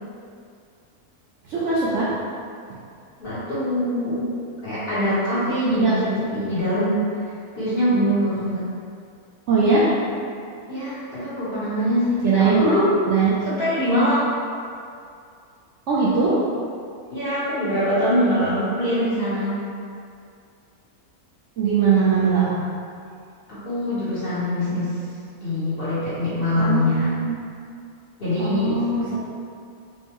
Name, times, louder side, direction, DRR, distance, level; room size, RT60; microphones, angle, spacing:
voice 1, 1.5-2.1 5.8-6.0 9.5-9.9 12.2-12.7 13.1-13.4 15.9-16.4 21.6-22.7 26.5-27.4 28.4-29.0, right 4 dB, 65° right, -8 dB, 0.8 m, -20 dB
voice 2, 3.2-4.3 4.6-7.0 7.5-8.6 10.7-12.9 13.4-14.3 17.1-19.6 23.5-24.8 25.4-27.1 28.2-28.8, equal, 40° left, -13 dB, 1.3 m, -23 dB
4.5 x 2.1 x 3.0 m, 2.4 s
omnidirectional pair, 1.6 m